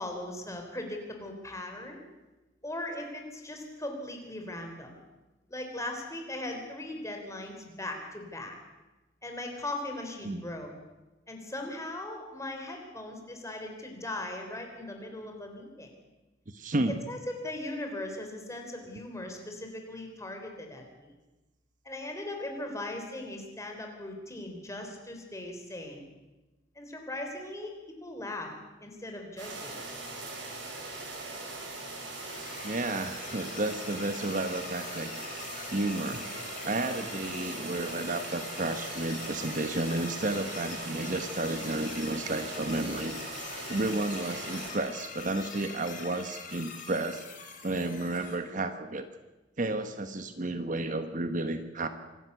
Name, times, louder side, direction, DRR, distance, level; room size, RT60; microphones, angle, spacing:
voice 1, 0.0-2.0 2.6-5.0 5.5-8.6 9.2-10.7 11.3-15.9 16.9-21.1 21.8-26.1 26.8-28.5 28.8-29.7, left 1 dB, 15° left, 3 dB, 3.7 m, -39 dB
voice 2, 16.5-17.0 32.6-36.3 36.6-43.2 43.7-47.3 47.6-49.1 49.6-51.9, right 2 dB, 45° right, 9 dB, 1.1 m, -32 dB
sound 1, 29.4-44.7, right 2 dB, 75° right, 5.8 m, -40 dB
sound 2, 31.7-48.3, left 5 dB, 45° left, 4.0 m, -44 dB
25.5 x 12.5 x 8.2 m, 1.1 s
head